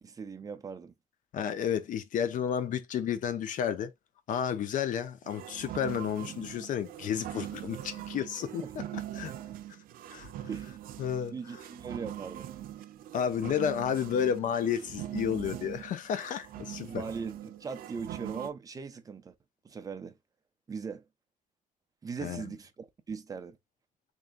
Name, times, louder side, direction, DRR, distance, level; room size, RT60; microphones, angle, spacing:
voice 1, 0.0-0.9 8.6-8.7 10.5-10.8 11.3-12.5 16.8-19.3 19.6-20.2 20.7-21.0 22.0-23.6, right 5 dB, 25° right, 0.6 m, -40 dB
voice 2, 1.3-3.9 4.3-9.3 10.1-10.3 11.0-11.3 13.1-17.0 22.2-22.5, left 8 dB, 65° left, 0.7 m, -31 dB
sound 1, 5.2-18.5, right 12 dB, 80° right, 0.5 m, -42 dB
3.6 x 3.1 x 2.5 m
cardioid pair, 140°, 15 cm